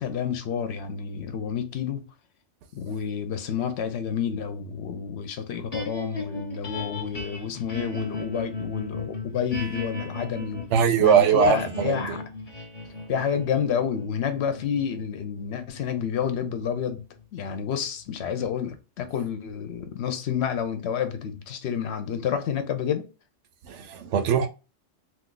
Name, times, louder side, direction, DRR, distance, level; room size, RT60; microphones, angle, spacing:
voice 1, 0.0-2.0 2.7-10.7 11.0-12.2 13.1-17.0 17.3-23.1, left 8 dB, 70° left, 0.8 m, -29 dB
sound 1, 5.7-18.0, left 3 dB, 35° left, 0.8 m, -37 dB
voice 2, 10.7-12.2 23.6-24.5, right 8 dB, 80° right, 0.9 m, -21 dB
2.6 x 2.4 x 3.7 m
omnidirectional pair, 1.2 m